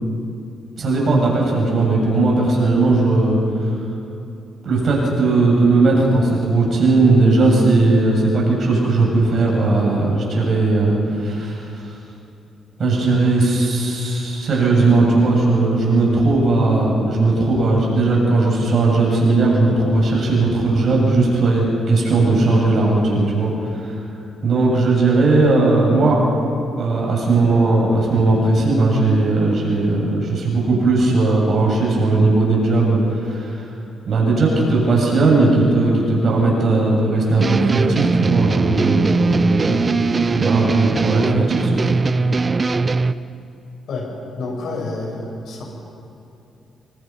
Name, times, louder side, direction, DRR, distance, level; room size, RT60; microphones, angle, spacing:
voice 1, 0.8-3.4 4.6-11.7 12.8-23.5 23.8-24.0 24.4-26.2 26.8-33.7 34.1-39.8 40.1-42.0, right 3 dB, 50° right, -2 dB, 7.3 m, -17 dB
sound 1, 37.4-43.1, right 4 dB, 30° right, 0.7 m, -20 dB
voice 2, 44.4-45.6, left 3 dB, 70° left, -1 dB, 8.0 m, -28 dB
26.0 x 24.5 x 5.6 m, 2.7 s
cardioid pair, 115°, 0 cm